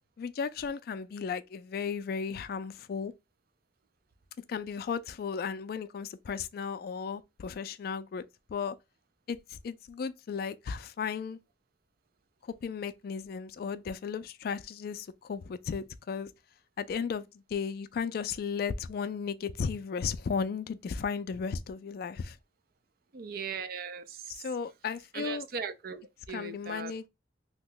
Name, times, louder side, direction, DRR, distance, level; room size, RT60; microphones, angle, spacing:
voice 1, 0.2-3.1 4.5-8.2 8.5-8.7 9.3-11.4 12.6-16.3 16.8-22.4 24.3-25.5 26.3-27.1, left 6 dB, 55° left, 0.3 m, -35 dB
voice 2, 23.1-24.3 25.1-26.9, right 6 dB, 55° right, 0.4 m, -39 dB
2.9 x 2.2 x 3.7 m
head